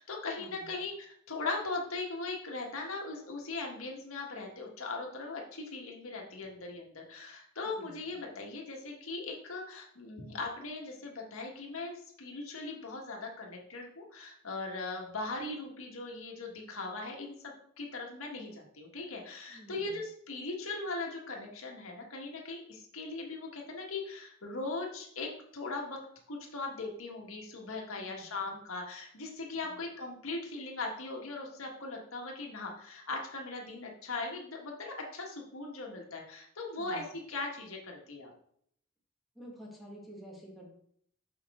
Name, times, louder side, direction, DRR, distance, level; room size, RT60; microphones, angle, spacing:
voice 1, 0.0-26.0 26.3-38.3, left 3 dB, 80° left, 0 dB, 1.6 m, -39 dB
voice 2, 19.5-20.0 28.0-28.2 29.6-29.8 36.8-37.1 39.3-40.7, equal, ahead, -2 dB, 1.5 m, -50 dB
6.2 x 6.2 x 3.6 m, 0.66 s
head